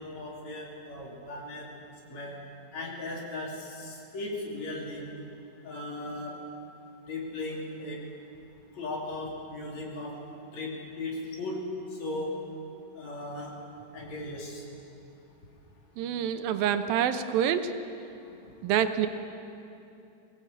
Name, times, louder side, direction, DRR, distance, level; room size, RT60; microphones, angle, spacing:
voice 1, 0.0-1.7 2.1-2.4 2.7-5.1 5.6-6.3 7.1-8.0 8.8-10.1 10.5-11.6 12.0-12.3 13.0-13.5 13.9-14.6, left 2 dB, 50° left, -2 dB, 4.1 m, -37 dB
voice 2, 16.0-17.7 18.6-19.1, right 9 dB, 80° right, 9 dB, 2.6 m, -26 dB
22.0 x 17.0 x 8.4 m, 2.7 s
omnidirectional pair, 4.1 m